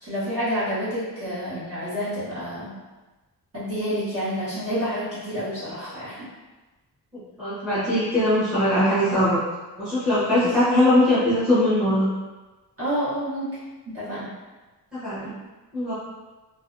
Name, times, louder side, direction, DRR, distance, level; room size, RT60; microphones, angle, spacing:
voice 1, 0.0-2.7 3.5-6.3 10.3-10.5 12.8-13.6 13.9-14.3, equal, 35° right, -12 dB, 1.1 m, -29 dB
voice 2, 7.1-9.4 9.8-12.1 14.9-15.3 15.7-15.9, left 1 dB, ahead, -14 dB, 0.9 m, -21 dB
2.5 x 2.2 x 2.5 m, 1.2 s
wide cardioid pair, 165°, 40 cm